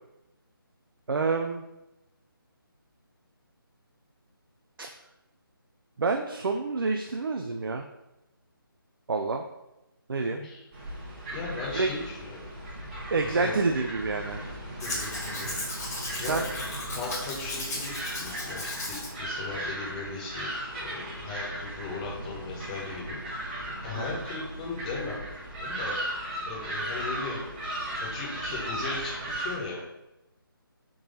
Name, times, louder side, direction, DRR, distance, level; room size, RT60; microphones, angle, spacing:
voice 1, 1.1-1.6 4.8-4.9 6.0-7.8 9.1-9.4 10.1-10.4 11.7-11.9 13.1-14.4 16.3-16.4 23.9-24.2, right 4 dB, 65° right, 4 dB, 0.4 m, -28 dB
voice 2, 10.3-10.6 11.3-12.4 13.2-13.6 14.8-15.6 16.2-16.4 16.9-20.5 20.8-25.2 25.6-26.2 26.5-27.4 28.0-29.8, left 4 dB, 20° left, -4 dB, 1.0 m, -38 dB
sound 1, 10.7-29.6, right 1 dB, 25° right, 1.3 m, -36 dB
Domestic sounds home sounds, 14.8-19.1 19.5-19.6, left 2 dB, 45° left, 1.2 m, -36 dB
3.7 x 3.0 x 3.9 m, 0.93 s
figure-of-eight pair, 155°, 12 cm